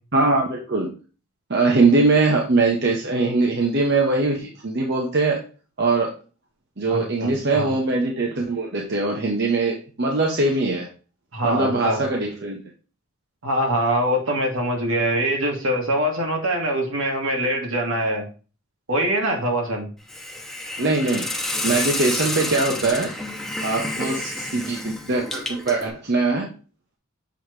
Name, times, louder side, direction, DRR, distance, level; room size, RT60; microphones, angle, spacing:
voice 1, 0.1-0.9 1.5-5.4 5.8-6.1 6.8-10.9 11.4-12.6 20.8-21.3 21.6-23.1 23.6-26.5, right 3 dB, 50° right, 0 dB, 0.9 m, -21 dB
voice 2, 6.9-7.7 11.3-12.0 13.4-18.3 18.9-19.9, right 1 dB, 70° right, 1 dB, 1.7 m, -23 dB
Hiss, 20.1-25.9, left 1 dB, ahead, 0.8 m, -29 dB
7.1 x 3.1 x 4.7 m, 0.35 s
head